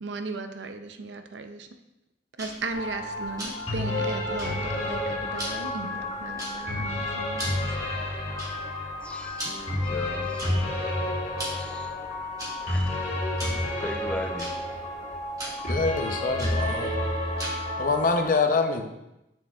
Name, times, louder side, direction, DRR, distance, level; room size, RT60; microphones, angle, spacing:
voice 1, 0.0-1.7 2.4-7.8, right 3 dB, 75° right, 7 dB, 0.5 m, -36 dB
Tick-tock, 2.4-17.8, equal, 20° right, 2.2 m, -42 dB
sound 1, 2.7-18.2, left 1 dB, 35° left, 1.5 m, -30 dB
voice 2, 9.0-10.6 11.5-11.9 12.6-13.2 13.8-14.6, equal, 5° left, 3 dB, 0.5 m, -38 dB
voice 3, 15.6-16.9 17.8-18.8, left 4 dB, 50° left, 5 dB, 0.6 m, -25 dB
7.5 x 6.3 x 2.4 m, 0.91 s
head